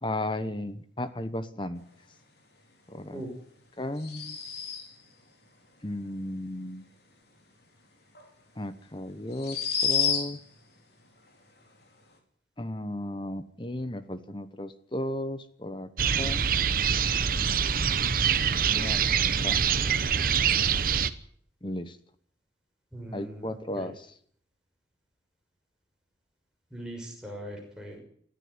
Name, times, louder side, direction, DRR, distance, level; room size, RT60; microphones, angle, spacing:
voice 1, 0.0-1.8 2.9-3.2 3.8-4.4 5.8-6.8 8.6-10.4 12.6-15.9 16.2-16.4 18.7-19.2 19.4-19.6 21.6-22.0 23.1-24.1, left 1 dB, 25° left, 12 dB, 1.0 m, -35 dB
sound 1, 4.0-5.1 8.1-8.2 9.3-10.6, left 7 dB, 60° left, 4.5 m, -29 dB
sound 2, 16.0-21.1, right 7 dB, 50° right, 1.0 m, -25 dB
voice 2, 22.9-23.9 26.7-28.0, right 1 dB, 5° right, -1 dB, 6.3 m, -40 dB
21.0 x 14.0 x 9.7 m, 0.62 s
head